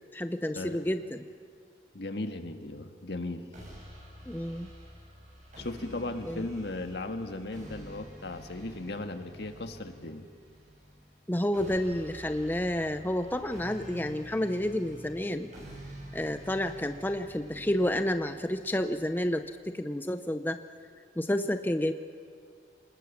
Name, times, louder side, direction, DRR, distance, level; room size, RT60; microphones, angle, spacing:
voice 1, 0.1-1.2 4.3-4.7 6.3-6.5 11.3-15.5 16.1-20.6 21.2-21.9, left 1 dB, 10° left, 8 dB, 0.6 m, -30 dB
voice 2, 1.9-3.5 5.6-10.3, left 2 dB, 65° left, 7 dB, 1.6 m, -37 dB
sound 1, 3.5-19.5, equal, 45° right, 7.9 m, -48 dB
27.5 x 19.5 x 7.3 m, 2.2 s
head